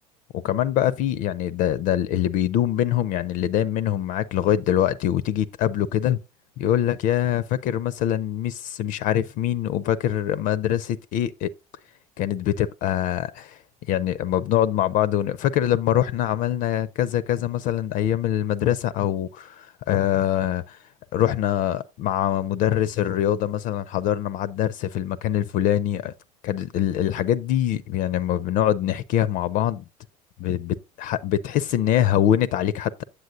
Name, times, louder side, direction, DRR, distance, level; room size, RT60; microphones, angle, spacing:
voice 1, 0.3-6.2 6.6-11.5 12.2-13.6 13.9-20.8 21.1-26.1 26.4-29.8 30.4-33.0, left 11 dB, 45° left, 0.4 m, -24 dB
8.3 x 7.5 x 2.5 m
figure-of-eight pair, 75°, 20 cm